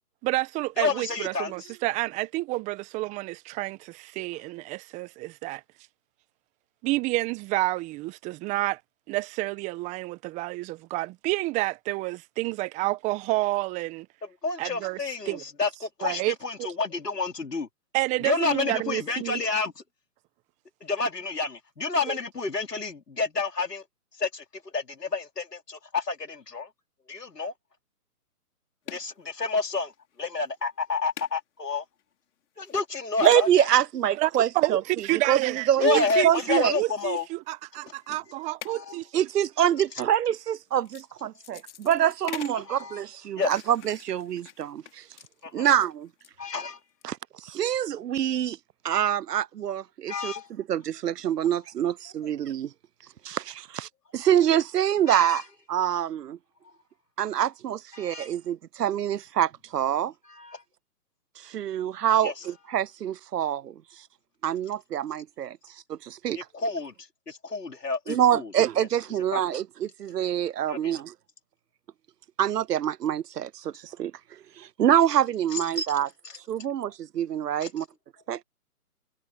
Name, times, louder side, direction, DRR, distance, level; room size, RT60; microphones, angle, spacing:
voice 1, 0.2-5.6 6.8-8.8 9.1-14.1 14.6-15.0 15.3-15.4 16.0-16.3 17.9-19.4 22.1-22.2 34.2-34.3 34.5-39.1, right 20 dB, 15° right, 1.2 m, -29 dB
voice 2, 0.8-1.5 14.2-17.7 18.2-19.8 20.8-23.8 24.2-24.4 24.7-26.7 27.1-27.5 28.9-29.9 30.2-31.8 32.6-33.7 35.8-37.3 38.1-38.2 38.7-39.0 42.5-43.0 43.4-43.5 45.4-45.7 46.4-46.8 50.1-50.5 55.1-55.4 57.9-58.3 60.3-60.6 62.2-62.3 66.3-66.9 67.3-68.5 69.3-69.4 70.7-70.9 75.5-75.9 76.2-76.4 77.6-77.7, left 4 dB, 85° left, 4.5 m, -30 dB
sound 1, 28.9-29.1 29.9-30.2 30.5-30.6 31.2-31.3 32.0-32.1 32.6-32.8 33.2-33.5 34.1-34.9 36.1-36.3 37.2-37.3 38.6-38.8 39.6-39.9 40.7-41.1 41.4-42.7 43.4-46.3 46.8-47.0, left 10 dB, 50° left, 4.9 m, -44 dB
voice 3, 33.2-36.7 39.1-45.1 45.5-46.1 47.0-48.6 48.8-50.3 50.7-52.7 53.2-55.4 55.7-56.4 57.2-60.1 61.4-64.0 64.4-65.6 65.9-66.4 68.1-71.1 72.4-76.1 76.5-77.9 78.3-78.4, right 10 dB, 80° right, 0.6 m, -26 dB
figure-of-eight pair, 140°, 47 cm